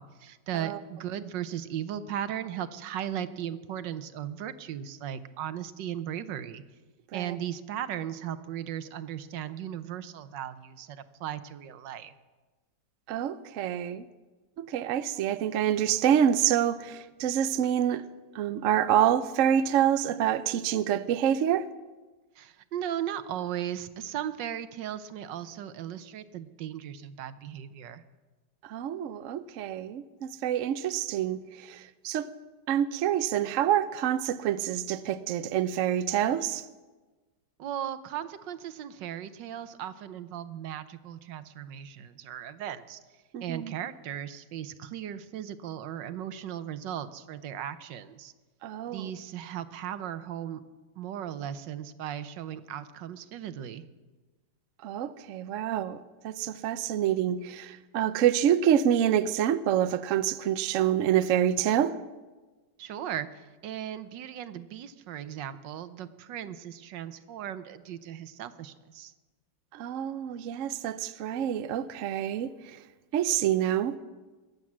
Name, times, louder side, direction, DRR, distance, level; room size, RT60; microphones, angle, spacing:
voice 1, 0.0-6.6 7.1-12.1 22.4-28.0 37.6-43.0 43.4-48.3 48.9-50.6 51.0-53.8 62.8-69.1, right 10 dB, 85° right, 1.5 m, -37 dB
voice 2, 13.1-14.1 14.6-18.0 18.3-21.7 28.6-32.3 32.7-36.6 43.3-43.7 48.6-49.1 54.8-56.0 56.2-61.9 69.7-72.8 73.1-74.0, right 10 dB, 65° right, 0.8 m, -27 dB
21.5 x 7.9 x 7.4 m
omnidirectional pair, 1.9 m